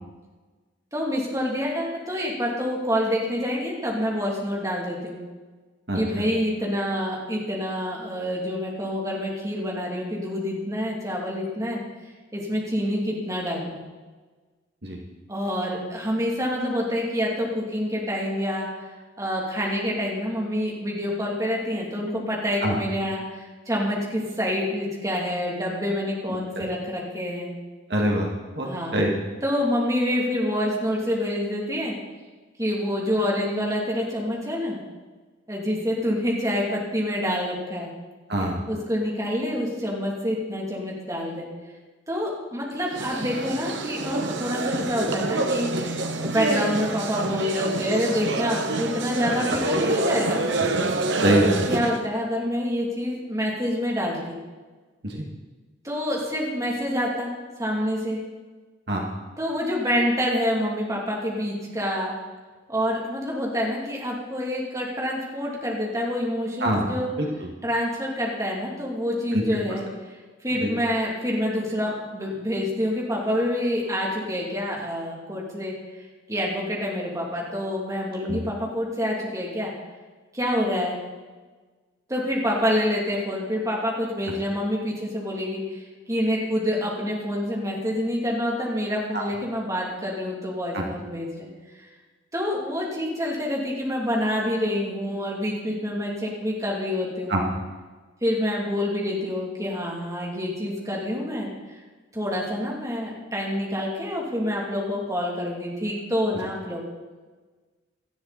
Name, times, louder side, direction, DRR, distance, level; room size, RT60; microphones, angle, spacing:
voice 1, 0.9-5.2 5.9-11.8 12.3-13.7 15.3-27.5 28.6-29.0 29.4-31.9 32.6-34.8 35.5-37.9 38.7-41.5 42.1-50.4 51.2-51.4 51.7-54.4 55.8-57.3 57.6-58.2 59.4-62.1 62.7-67.1 67.6-70.2 70.4-75.7 76.3-79.7 80.3-81.0 82.1-91.5 92.3-97.4 98.2-101.8 102.1-106.8, equal, 15° right, -3 dB, 3.0 m, -27 dB
voice 2, 27.9-28.3 28.5-29.1 38.3-38.6 51.2-51.6 55.0-55.3 58.9-59.1 66.6-67.5 69.3-69.4 70.6-70.7 78.3-78.4 89.1-89.2 90.7-90.8 97.3-97.4, right 1 dB, 60° right, -1 dB, 2.2 m, -24 dB
sound 1, 42.9-52.0, right 2 dB, 80° right, 1.2 m, -27 dB
18.0 x 13.0 x 4.3 m, 1.3 s
head